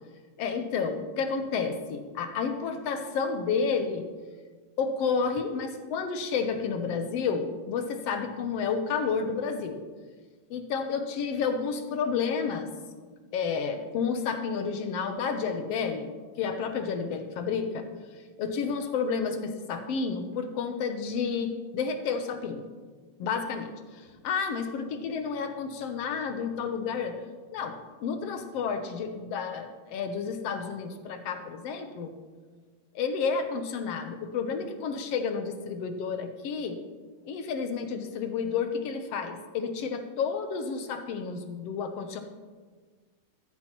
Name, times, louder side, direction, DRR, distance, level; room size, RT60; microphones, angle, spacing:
voice 1, 0.4-4.1 4.8-9.8 10.5-12.7 13.3-17.9 18.4-22.7 23.2-27.2 27.5-32.1 32.9-36.8 37.2-42.2, left 5 dB, 70° left, 7 dB, 1.7 m, -31 dB
14.0 x 13.5 x 3.0 m, 1.5 s
omnidirectional pair, 3.3 m